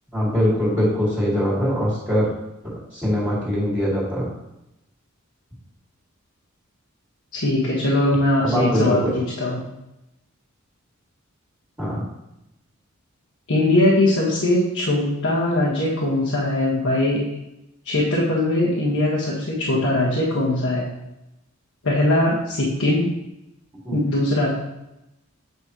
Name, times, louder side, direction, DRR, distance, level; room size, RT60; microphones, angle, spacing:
voice 1, 0.1-2.3 2.6-4.3 8.4-9.1 11.8-12.0 23.8-24.0, equal, 10° right, -10 dB, 2.1 m, -22 dB
voice 2, 7.3-9.6 13.5-17.2 17.8-20.8 21.8-23.1 23.9-24.5, left 1 dB, 80° left, -6 dB, 1.4 m, -21 dB
8.6 x 5.2 x 3.0 m, 0.89 s
head